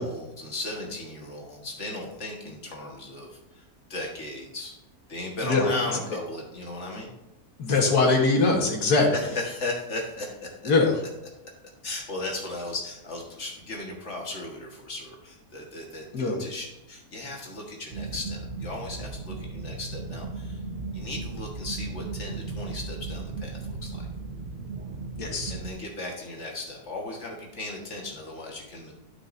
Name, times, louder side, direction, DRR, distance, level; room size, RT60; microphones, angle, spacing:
voice 1, 0.0-3.6 3.9-4.8 5.1-7.1 9.1-10.7 11.8-20.6 20.9-24.1 25.5-28.9, left 2 dB, 50° left, 0 dB, 1.8 m, -36 dB
voice 2, 7.6-9.1 10.7-11.0 16.1-16.4 25.2-25.5, left 3 dB, 90° left, 0 dB, 2.0 m, -21 dB
sound 1, 17.9-25.7, right 3 dB, 50° right, 0.8 m, -36 dB
11.5 x 6.1 x 2.6 m, 0.90 s
omnidirectional pair, 1.6 m